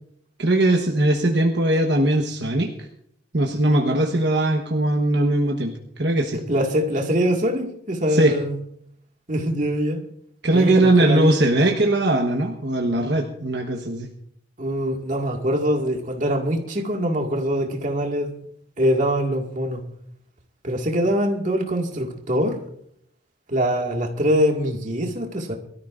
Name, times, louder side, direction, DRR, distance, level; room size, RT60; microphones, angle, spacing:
voice 1, 0.4-2.7 3.3-5.7 6.0-6.4 8.1-8.3 10.4-14.1, right 1 dB, 65° right, 1.3 m, -20 dB
voice 2, 6.5-8.6 9.3-10.0 10.5-11.3 14.6-18.3 18.8-19.8 20.6-22.6 23.5-25.6, equal, 45° right, 2.1 m, -23 dB
23.5 x 13.5 x 2.6 m
head